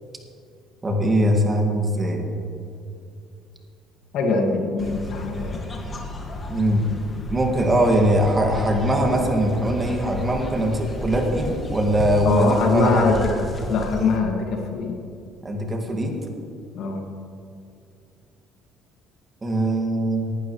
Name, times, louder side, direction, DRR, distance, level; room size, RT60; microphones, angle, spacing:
voice 1, 0.8-2.3 6.5-6.9 7.3-13.1 15.4-16.2 19.4-20.3, right 1 dB, 20° right, 1 dB, 2.0 m, -21 dB
voice 2, 4.1-5.6 12.2-13.2 13.7-14.9 16.7-17.0, left 4 dB, 70° left, 2 dB, 2.0 m, -22 dB
sound 1, 4.8-14.2, left 1 dB, 30° left, 2.0 m, -33 dB
18.5 x 11.5 x 3.2 m, 2.5 s
cardioid pair, 95°, 0 cm